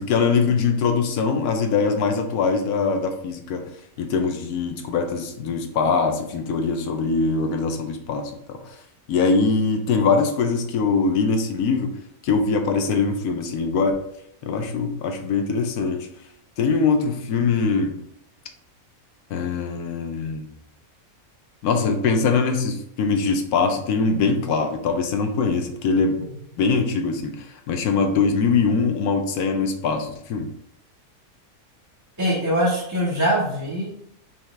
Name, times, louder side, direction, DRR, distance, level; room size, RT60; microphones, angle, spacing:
voice 1, 0.0-3.7 4.0-8.8 9.1-11.9 12.2-13.9 14.4-16.1 16.6-18.0 19.3-20.5 21.6-26.2 26.6-30.5, left 4 dB, 90° left, 5 dB, 1.2 m, -22 dB
voice 2, 32.2-34.0, equal, 10° right, -7 dB, 1.2 m, -22 dB
5.5 x 2.9 x 3.2 m, 0.73 s
omnidirectional pair, 1.6 m